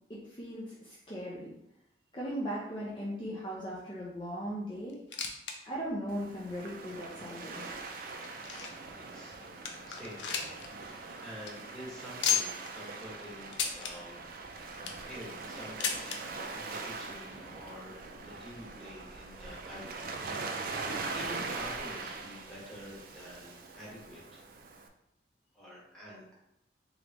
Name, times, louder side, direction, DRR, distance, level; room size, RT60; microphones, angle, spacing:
voice 1, 0.1-1.5 2.1-5.0 5.6-7.7, equal, 30° left, -6 dB, 0.7 m, -38 dB
sound 1, 4.9-5.6 5.9-6.0 6.6-6.7 7.4-8.9 9.3-9.4 9.7-10.7 11.0-11.1 11.3-11.5 12.2-12.7 13.5-13.9 14.6-15.1 15.8-16.2 17.2-17.3 17.5-17.6 18.4-18.5, left 7 dB, 85° left, 0.5 m, -33 dB
Waves surf, 6.1-24.9, right 3 dB, 55° right, 0.4 m, -42 dB
voice 2, 8.5-10.5 10.8-14.4 15.0-20.2 20.6-24.4 25.5-26.3, equal, 5° left, -8 dB, 1.5 m, -48 dB
3.9 x 3.4 x 3.0 m, 0.82 s
head